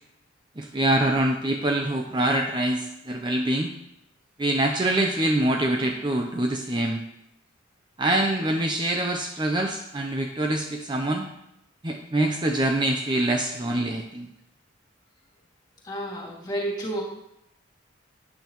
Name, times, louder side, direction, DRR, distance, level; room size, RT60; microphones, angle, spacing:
voice 1, 0.6-3.7 4.4-7.0 8.0-11.3 11.8-14.3, right 1 dB, 20° right, 2 dB, 0.7 m, -25 dB
voice 2, 15.8-17.0, right 1 dB, 20° left, -2 dB, 2.4 m, -30 dB
12.5 x 9.3 x 3.1 m, 0.81 s
head